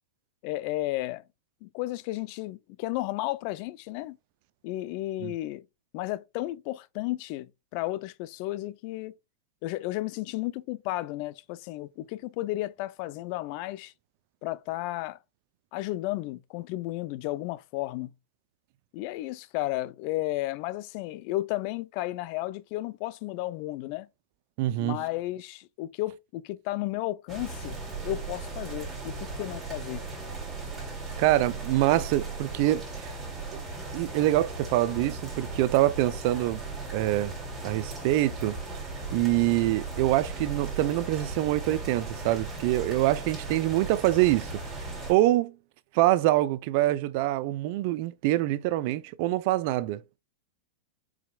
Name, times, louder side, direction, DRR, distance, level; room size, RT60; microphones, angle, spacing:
voice 1, 0.4-1.2 1.6-4.2 4.6-5.6 5.9-9.1 9.6-13.9 14.4-15.2 15.7-18.1 18.9-24.1 24.8-27.8 28.0-30.0, left 17 dB, 55° left, 0.4 m, -33 dB
voice 2, 24.6-25.0 31.2-33.2 33.5-33.6 33.9-36.6 36.9-37.3 37.6-38.6 39.1-45.5 45.9-50.0, right 15 dB, 55° right, 0.4 m, -25 dB
sound 1, 27.3-45.1, right 3 dB, 20° right, 2.5 m, -37 dB
4.9 x 4.0 x 2.2 m
hypercardioid pair, 120°, 0 cm